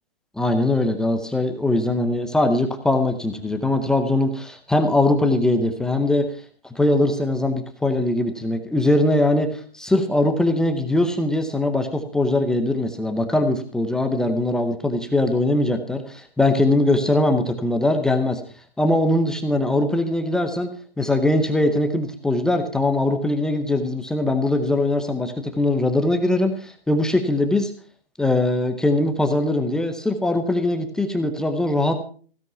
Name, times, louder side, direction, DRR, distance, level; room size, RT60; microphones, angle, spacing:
voice 1, 0.4-6.3 6.8-18.4 18.8-20.7 21.0-27.7 28.2-32.0, left 1 dB, ahead, 6 dB, 0.6 m, -21 dB
16.0 x 10.5 x 5.5 m, 0.42 s
hypercardioid pair, 150°, 31 cm